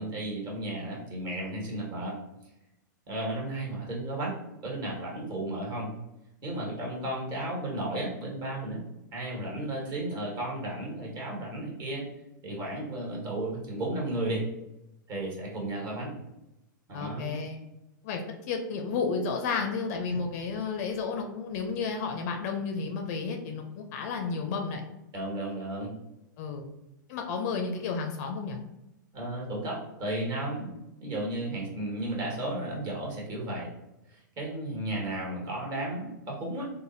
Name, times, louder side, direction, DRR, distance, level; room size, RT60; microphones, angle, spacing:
voice 1, 0.0-2.1 3.1-4.4 4.6-5.9 6.4-8.8 9.1-12.0 12.4-14.4 15.1-16.1 16.9-17.4 25.1-25.9 29.1-30.7 31.0-33.7 34.1-36.7, right 1 dB, 40° right, -3 dB, 1.3 m, -34 dB
voice 2, 16.9-17.6 18.0-24.8 26.4-26.7 27.1-28.6, left 5 dB, 50° left, 3 dB, 0.4 m, -32 dB
3.3 x 2.1 x 2.6 m, 0.90 s
hypercardioid pair, 110°, 11 cm